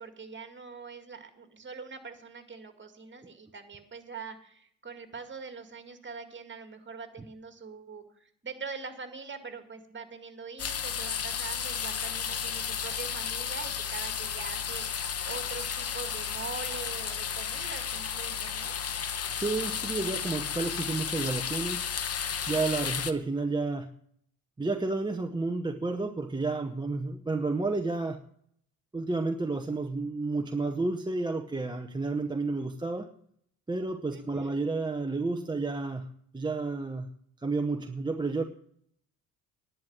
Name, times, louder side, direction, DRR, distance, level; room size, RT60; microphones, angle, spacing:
voice 1, 0.0-18.7 34.1-34.6, right 5 dB, 25° right, 7 dB, 2.2 m, -43 dB
sound 1, 10.6-23.1, left 7 dB, 35° left, 1.0 m, -33 dB
voice 2, 19.3-21.8 22.5-23.9 24.6-28.2 28.9-33.1 33.7-36.1 36.3-37.1 37.4-38.4, right 3 dB, 10° right, 5 dB, 0.9 m, -31 dB
11.0 x 9.3 x 6.2 m, 0.65 s
hypercardioid pair, 60°, 41 cm